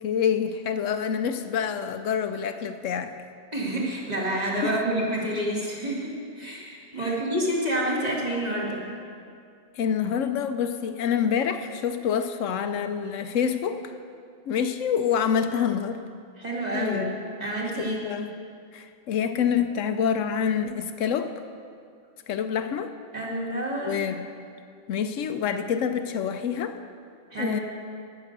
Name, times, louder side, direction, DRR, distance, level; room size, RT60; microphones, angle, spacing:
voice 1, 0.0-3.1 4.6-4.7 9.8-13.9 14.5-16.0 16.7-17.2 17.8-18.3 18.7-21.3 22.3-22.9 23.8-24.3 24.9-26.8 27.4-27.6, left 7 dB, 80° left, 8 dB, 1.0 m, -27 dB
voice 2, 3.5-8.8 16.4-17.1 17.4-18.0 23.1-24.0 27.3-27.6, right 1 dB, 30° right, -4 dB, 2.3 m, -28 dB
9.9 x 9.8 x 6.6 m, 2.3 s
omnidirectional pair, 1.3 m